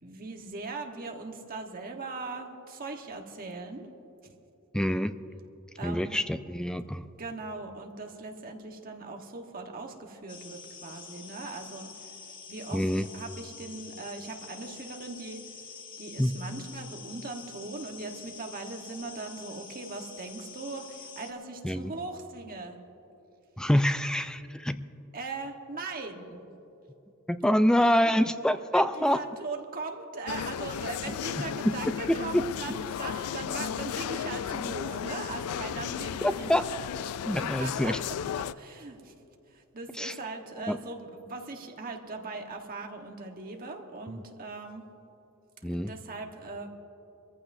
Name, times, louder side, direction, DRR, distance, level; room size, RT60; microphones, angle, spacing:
voice 1, 0.0-3.9 4.2-4.3 5.8-6.2 7.2-12.1 12.5-12.8 13.1-15.4 16.0-22.8 25.1-26.5 27.8-28.3 28.7-36.6 37.3-39.1 39.5-44.8 45.6-46.7, right 3 dB, 40° right, 3 dB, 1.3 m, -40 dB
voice 2, 4.7-5.1 5.8-7.0 12.7-13.1 16.2-16.3 21.6-21.9 23.6-24.8 27.3-29.2 31.4-31.7 32.1-32.5 36.2-36.6 37.3-38.0 40.0-40.1 40.7-40.8 44.1-44.2 45.6-45.9, equal, 5° left, 10 dB, 0.3 m, -26 dB
sound 1, 10.3-21.3, left 6 dB, 40° left, 1.4 m, -47 dB
sound 2, 30.3-38.5, left 8 dB, 80° left, 0.3 m, -34 dB
24.5 x 14.5 x 2.7 m, 2.8 s
head